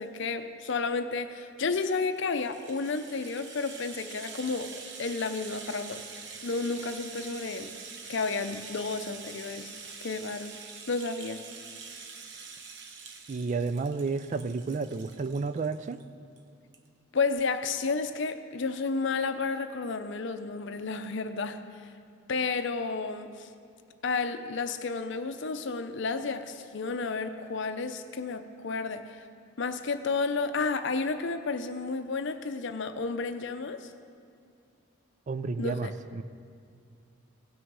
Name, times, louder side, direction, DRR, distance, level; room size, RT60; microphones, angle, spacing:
voice 1, 0.0-4.7 5.0-6.0 6.4-7.7 8.1-9.7 10.0-10.5 10.9-11.4 17.1-21.6 22.3-23.5 24.0-29.3 29.6-33.9 35.6-35.9, left 4 dB, 60° left, 9 dB, 0.6 m, -31 dB
Rattle (instrument), 2.0-16.0 16.4-16.5 16.7-16.9, right 5 dB, 60° right, 0.8 m, -45 dB
voice 2, 13.3-16.0 35.3-36.2, right 4 dB, 35° right, 12 dB, 0.3 m, -31 dB
17.0 x 6.3 x 4.7 m, 2.4 s
head